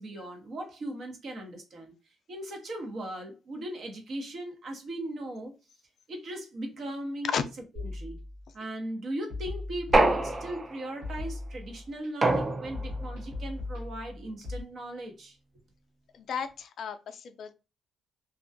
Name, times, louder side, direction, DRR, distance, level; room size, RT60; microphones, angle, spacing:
voice 1, 0.0-1.9 2.3-5.5 6.1-7.4 7.7-8.2 8.5-15.4, right 1 dB, 55° right, 0.9 m, -38 dB
sound 1, 7.7-8.7 9.3-10.6 11.0-12.1 12.7-14.6, left 2 dB, 90° right, 1.0 m, -38 dB
sound 2, 9.9-10.9 12.2-13.0, right 2 dB, 25° right, 0.4 m, -25 dB
voice 2, 16.2-17.5, left 7 dB, 65° left, 0.3 m, -34 dB
2.4 x 2.2 x 2.5 m
cardioid pair, 90°, 0 cm